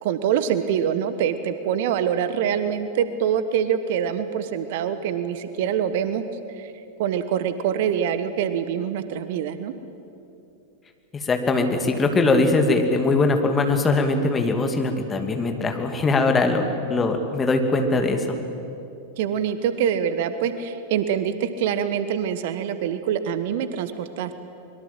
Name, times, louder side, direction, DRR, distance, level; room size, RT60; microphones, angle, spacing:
voice 1, 0.0-6.2 6.5-6.7 7.0-9.7 19.2-24.3, right 8 dB, 50° right, 11 dB, 1.2 m, -25 dB
voice 2, 11.2-18.2, left 3 dB, 20° left, 5 dB, 2.5 m, -21 dB
24.0 x 22.5 x 7.7 m, 2.7 s
figure-of-eight pair, 90°, 0 cm